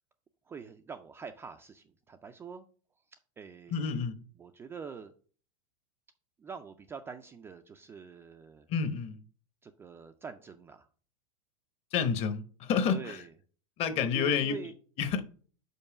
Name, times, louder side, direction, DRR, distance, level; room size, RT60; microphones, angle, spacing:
voice 1, 0.5-2.6 3.4-3.8 4.4-5.1 6.4-8.7 9.6-10.9 12.9-13.2 14.0-14.7, right 6 dB, 15° right, 0.3 m, -44 dB
voice 2, 3.7-4.2 8.7-9.2 11.9-13.2 13.8-14.6 15.0-15.2, left 6 dB, 35° left, 0.8 m, -29 dB
5.5 x 4.5 x 5.8 m
supercardioid pair, 145°, 18 cm